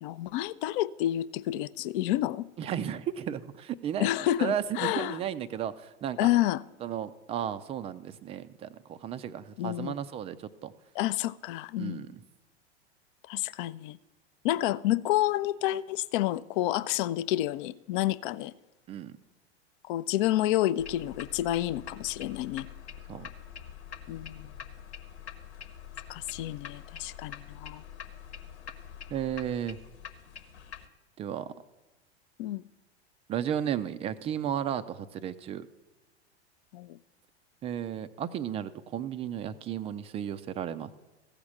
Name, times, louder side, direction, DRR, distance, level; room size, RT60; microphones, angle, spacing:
voice 1, 0.0-2.5 4.0-5.2 6.2-6.6 9.6-10.0 11.0-12.1 13.3-14.0 14.4-18.5 19.9-22.7 24.1-24.5 26.1-27.8 32.4-32.6 36.7-37.0, left 14 dB, 50° left, 0.5 m, -29 dB
voice 2, 2.6-4.1 4.4-6.3 6.8-10.7 11.8-12.2 18.9-19.1 23.1-23.3 29.1-29.8 31.2-31.5 33.3-35.7 37.6-40.9, right 9 dB, 20° right, 0.3 m, -34 dB
sound 1, 20.8-30.9, left 8 dB, 75° left, 1.1 m, -45 dB
15.0 x 5.1 x 7.2 m
hypercardioid pair, 95°, 34 cm